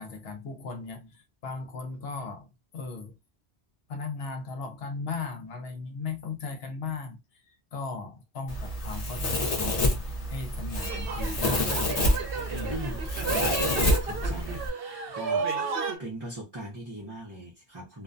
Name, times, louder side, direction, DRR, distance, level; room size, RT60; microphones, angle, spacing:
voice 1, 0.0-3.2 3.9-7.2 7.7-12.8, left 4 dB, 70° left, 0.9 m, -37 dB
Domestic sounds home sounds, 8.5-14.7, left 1 dB, 40° left, 0.6 m, -28 dB
sound 1, 10.8-16.0, right 5 dB, 65° right, 0.8 m, -32 dB
voice 2, 12.7-14.6 15.1-18.0, right 1 dB, 25° right, 0.6 m, -40 dB
2.4 x 2.2 x 2.5 m
omnidirectional pair, 1.1 m